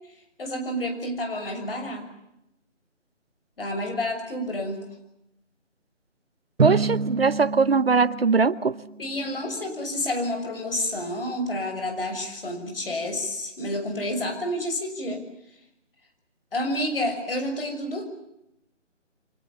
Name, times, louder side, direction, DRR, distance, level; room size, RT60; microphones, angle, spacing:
voice 1, 0.4-2.1 3.6-4.8 9.0-15.2 16.5-18.0, left 1 dB, 50° left, 5 dB, 6.5 m, -29 dB
voice 2, 6.6-8.7, right 4 dB, 50° right, 17 dB, 0.9 m, -21 dB
Drum, 6.6-9.3, right 4 dB, 80° right, 1.2 m, -28 dB
29.5 x 24.5 x 7.1 m, 0.83 s
figure-of-eight pair, 160°, 37 cm